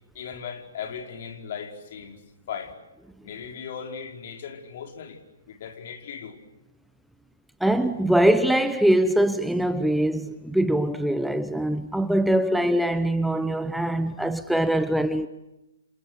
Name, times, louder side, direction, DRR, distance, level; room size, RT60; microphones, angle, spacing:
voice 1, 0.1-2.2 2.5-2.7 3.2-5.2 5.4-6.4, left 7 dB, 50° left, 4.9 m, -37 dB
voice 2, 7.6-15.3, right 1 dB, ahead, 0.9 m, -22 dB
29.0 x 29.0 x 6.7 m
hypercardioid pair, 135°, 0 cm